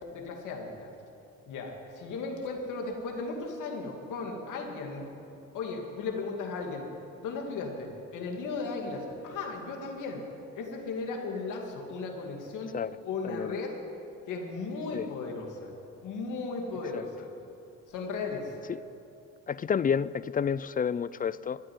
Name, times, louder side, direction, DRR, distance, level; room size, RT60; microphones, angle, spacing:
voice 1, 0.0-0.9 1.5-5.1 5.5-6.9 7.2-10.2 10.6-12.8 13.0-13.8 14.3-15.7 16.0-17.3 17.9-18.6, left 4 dB, 85° left, 2 dB, 2.4 m, -36 dB
voice 2, 19.5-21.6, left 7 dB, 30° left, 18 dB, 0.4 m, -29 dB
14.5 x 8.8 x 9.5 m, 2.8 s
cardioid pair, 90°, 30 cm